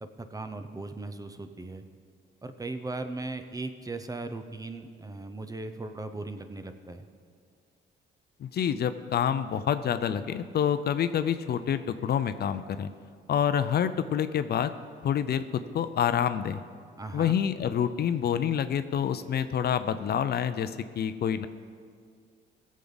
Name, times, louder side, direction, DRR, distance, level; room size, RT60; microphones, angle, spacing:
voice 1, 0.0-1.8 2.4-7.1 17.0-17.4, right 2 dB, 20° right, 8 dB, 0.7 m, -38 dB
voice 2, 8.4-12.9 13.3-14.7 15.0-16.6 17.1-21.5, left 8 dB, 55° left, 11 dB, 0.5 m, -27 dB
16.5 x 7.4 x 4.0 m, 2.1 s
cardioid pair, 90°, 20 cm